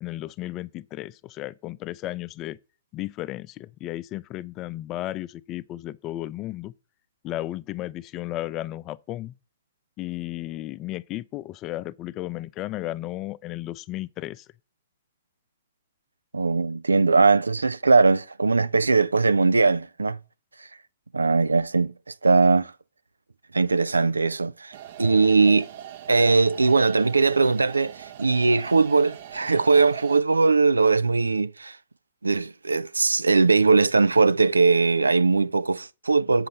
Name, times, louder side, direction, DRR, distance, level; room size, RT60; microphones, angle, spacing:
voice 1, 0.0-2.6 2.9-6.7 7.2-9.3 10.0-14.5, left 15 dB, 30° left, 0.5 m, -34 dB
voice 2, 16.3-20.2 21.1-21.9 22.2-22.7 23.5-24.7 25.0-25.7 26.1-31.8 32.2-36.5, right 4 dB, 80° right, 0.5 m, -20 dB
sound 1, 24.7-30.2, right 11 dB, 50° right, 0.9 m, -41 dB
7.8 x 6.6 x 6.7 m
figure-of-eight pair, 115°, 0 cm